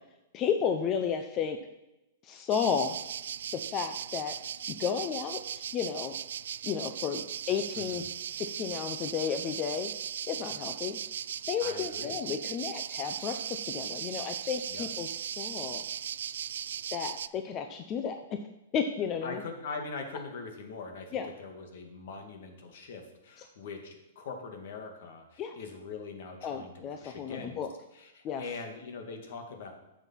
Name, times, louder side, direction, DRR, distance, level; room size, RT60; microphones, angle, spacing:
voice 1, 0.3-1.6 2.2-3.0 3.5-4.4 4.8-6.2 6.6-9.9 10.3-11.0 11.5-15.8 16.9-18.4 18.7-19.4 21.1-21.3 25.4-25.6 26.4-27.7 28.2-28.4, left 7 dB, 25° left, 6 dB, 0.7 m, -33 dB
sound 1, 2.5-17.3, right 9 dB, 80° right, 0.4 m, -38 dB
voice 2, 7.8-8.1 11.6-12.2 14.7-14.9 19.2-26.7 27.0-27.6 27.9-29.7, left 4 dB, 65° left, 4 dB, 2.2 m, -42 dB
10.5 x 7.2 x 5.8 m, 0.93 s
hypercardioid pair, 150°, 0 cm